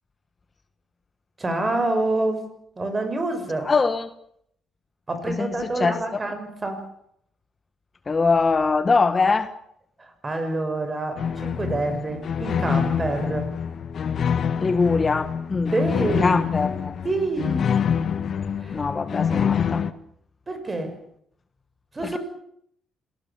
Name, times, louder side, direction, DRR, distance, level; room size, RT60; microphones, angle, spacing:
voice 1, 1.4-2.4 2.8-3.7 5.1-6.9 10.0-13.5 15.7-16.4 17.0-17.7 18.6-18.9 20.5-21.0 21.9-22.2, right 2 dB, 25° right, 8 dB, 6.6 m, -27 dB
voice 2, 3.6-4.1 5.3-5.5 5.8-6.2 8.1-9.5 14.6-15.7 16.2-16.9 18.7-19.8 22.0-22.2, left 4 dB, 30° left, 11 dB, 1.5 m, -22 dB
sound 1, 11.2-19.9, left 7 dB, 55° left, 1.6 m, -26 dB
27.0 x 18.5 x 7.5 m, 0.69 s
cardioid pair, 90°, 0 cm